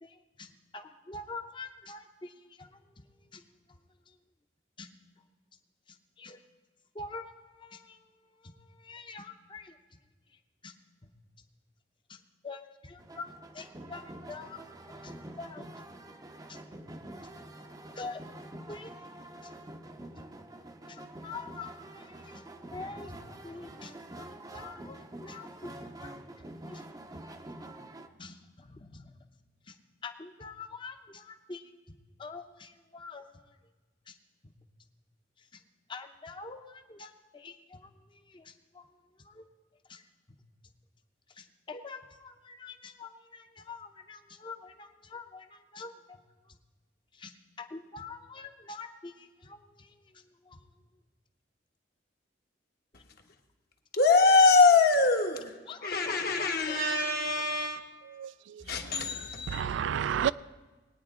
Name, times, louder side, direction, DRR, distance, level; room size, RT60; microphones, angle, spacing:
voice 1, 0.0-3.8 4.1-4.2 4.8-4.9 5.9-6.4 6.9-9.8 10.3-10.7 11.0-11.1 12.1-16.0 16.5-16.6 18.0-18.2 18.7-19.5 20.0-27.3 28.2-29.1 29.6-29.8 30.0-33.6 34.1-34.2 35.4-35.6 35.9-39.5 39.9-40.0 40.3-40.4 41.3-46.6 47.1-50.7 52.9-53.0 55.7-56.8, left 4 dB, 25° left, 0.7 m, -46 dB
sound 1, 13.0-28.1, right 1 dB, 20° right, 0.6 m, -46 dB
voice 2, 53.9-55.5 55.8-57.8 58.7-59.6, left 4 dB, 55° left, 1.2 m, -24 dB
voice 3, 56.7-58.6 58.9-59.0 59.5-60.3, right 9 dB, 75° right, 0.3 m, -32 dB
20.5 x 9.3 x 3.7 m
head